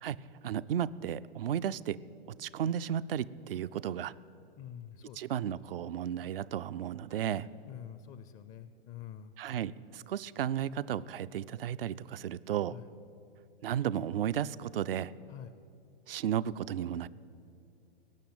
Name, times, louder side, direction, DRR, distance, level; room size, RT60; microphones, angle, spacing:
voice 1, 0.0-2.0 2.4-4.1 5.2-7.5 9.4-12.8 13.6-15.1 16.1-17.1, right 9 dB, 65° right, 16 dB, 0.5 m, -34 dB
voice 2, 4.6-5.2 7.1-9.3 12.6-12.9 15.3-15.5, left 10 dB, 25° left, 13 dB, 0.4 m, -47 dB
17.0 x 7.0 x 9.1 m, 2.5 s
figure-of-eight pair, 105°, 30 cm